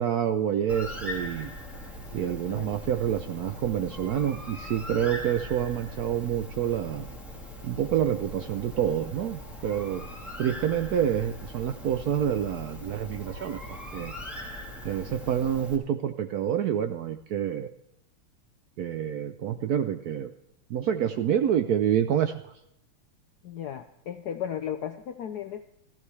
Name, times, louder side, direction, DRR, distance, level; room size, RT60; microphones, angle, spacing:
voice 1, 0.0-1.5 2.1-7.1 7.6-10.0 10.4-14.1 14.8-17.7 18.8-20.3 20.7-22.5, right 9 dB, 85° right, 8 dB, 0.8 m, -27 dB
Bird, 0.7-15.8, left 1 dB, ahead, 2.4 m, -41 dB
voice 2, 2.5-2.8 23.4-25.6, left 9 dB, 75° left, 8 dB, 0.9 m, -35 dB
15.5 x 15.0 x 3.2 m, 0.80 s
omnidirectional pair, 2.4 m